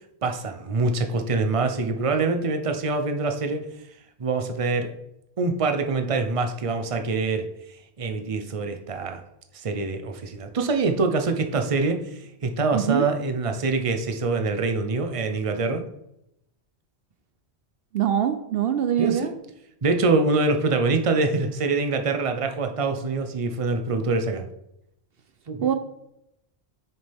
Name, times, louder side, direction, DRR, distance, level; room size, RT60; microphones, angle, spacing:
voice 1, 0.2-3.7 4.2-4.9 5.4-7.4 8.0-9.2 9.5-15.8 19.0-19.3 19.8-24.5 25.5-25.7, right 3 dB, 35° right, 6 dB, 0.8 m, -25 dB
voice 2, 12.7-13.1 17.9-19.4 25.6-25.7, right 10 dB, 65° right, 8 dB, 0.8 m, -23 dB
8.7 x 6.7 x 3.5 m, 0.83 s
omnidirectional pair, 1.1 m